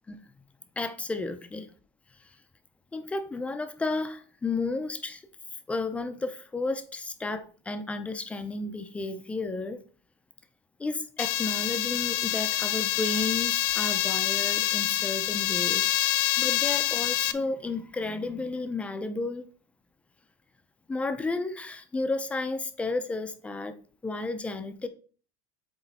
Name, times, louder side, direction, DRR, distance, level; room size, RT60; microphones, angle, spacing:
voice 1, 0.8-1.7 2.9-5.2 5.7-9.8 10.8-15.9 16.4-19.5 20.9-23.7 24.0-24.9, left 3 dB, 10° left, 0.5 m, -32 dB
sound 1, 11.2-17.3, left 14 dB, 70° left, 0.5 m, -26 dB
8.0 x 3.1 x 4.1 m
cardioid pair, 160°, 13 cm